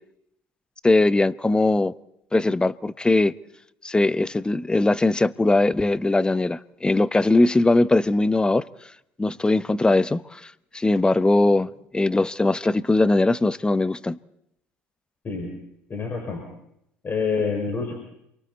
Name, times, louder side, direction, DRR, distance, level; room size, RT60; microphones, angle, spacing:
voice 1, 0.8-1.9 2.3-3.3 3.8-8.7 9.2-14.2, left 2 dB, 15° left, 0.8 m, -20 dB
voice 2, 15.2-15.6 15.9-16.4 17.0-17.9, left 5 dB, 35° left, 5.7 m, -27 dB
28.5 x 23.5 x 4.2 m
supercardioid pair, 80°, 6 cm